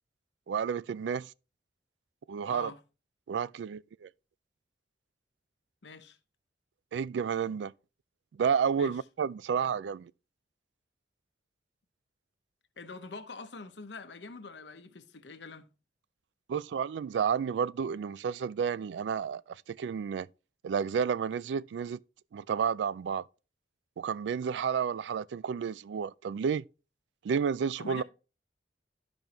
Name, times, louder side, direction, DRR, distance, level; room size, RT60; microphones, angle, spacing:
voice 1, 0.5-1.3 2.3-2.7 3.3-4.1 6.9-7.7 8.4-10.1 16.5-19.4 19.7-20.3 20.6-22.0 22.3-23.3 24.0-26.6 27.2-28.0, right 7 dB, 85° right, 0.3 m, -31 dB
voice 2, 2.5-2.8 5.8-6.2 8.8-9.0 12.8-15.7 27.8-28.0, left 4 dB, 80° left, 0.9 m, -44 dB
12.5 x 5.2 x 2.9 m
head